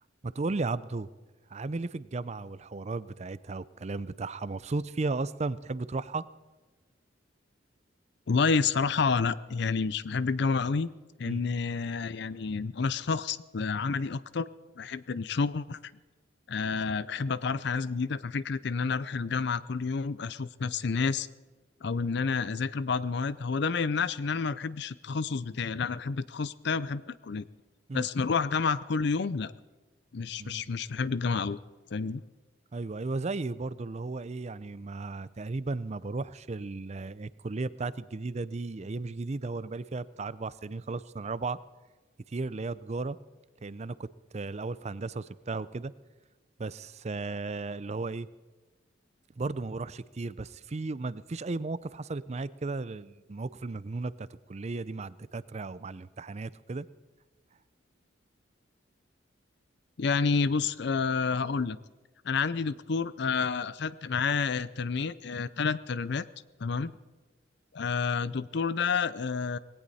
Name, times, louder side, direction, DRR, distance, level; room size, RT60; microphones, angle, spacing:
voice 1, 0.2-1.1 1.5-6.3 11.3-11.4 27.9-28.1 30.4-30.7 32.7-41.6 42.3-43.2 43.6-44.1 44.3-45.9 46.6-48.3 49.4-56.9, right 3 dB, 35° right, 17 dB, 0.5 m, -35 dB
voice 2, 8.3-10.9 11.2-14.5 14.8-15.8 16.5-21.3 21.8-27.5 27.9-29.5 30.1-31.6 31.9-32.2 60.0-61.8 62.2-66.2 66.6-66.9 67.7-69.6, left 5 dB, 65° left, 17 dB, 0.5 m, -29 dB
19.0 x 17.5 x 4.2 m, 1.3 s
head